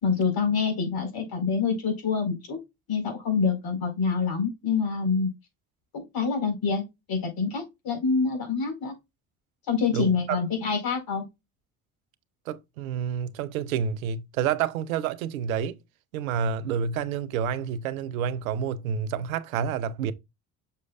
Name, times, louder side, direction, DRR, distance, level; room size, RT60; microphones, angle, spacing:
voice 1, 0.0-2.6 2.9-5.3 5.9-8.9 9.7-11.3, left 5 dB, 60° left, 4.5 m, -26 dB
voice 2, 9.9-10.4 12.5-15.8 16.1-20.1, right 7 dB, 90° right, 0.7 m, -29 dB
6.6 x 6.2 x 2.4 m
hypercardioid pair, 55°, 40 cm